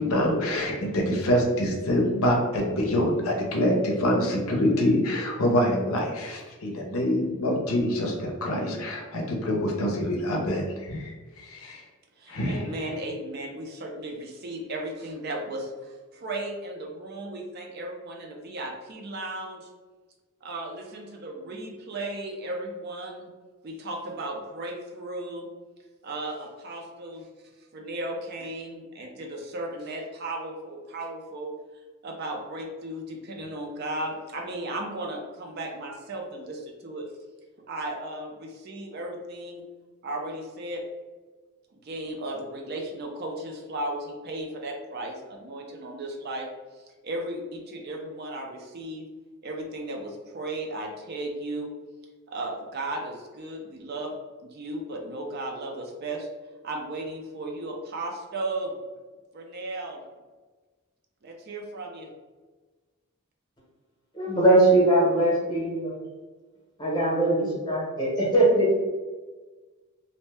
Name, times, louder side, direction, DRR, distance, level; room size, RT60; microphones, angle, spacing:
voice 1, 0.0-11.8 12.3-12.9, equal, 75° left, 1 dB, 0.6 m, -25 dB
voice 2, 12.2-19.7 20.4-23.3 23.6-25.5 26.0-27.3 27.7-31.5 32.0-37.1 37.7-39.6 40.0-40.8 41.7-46.5 47.0-49.1 49.4-51.7 52.3-54.1 54.4-56.3 56.6-58.7 59.3-60.0 61.2-62.1, right 1 dB, 45° right, 1 dB, 0.4 m, -35 dB
voice 3, 64.1-65.9 66.8-68.7, right 1 dB, 20° left, -5 dB, 0.8 m, -21 dB
2.6 x 2.1 x 3.2 m, 1.3 s
head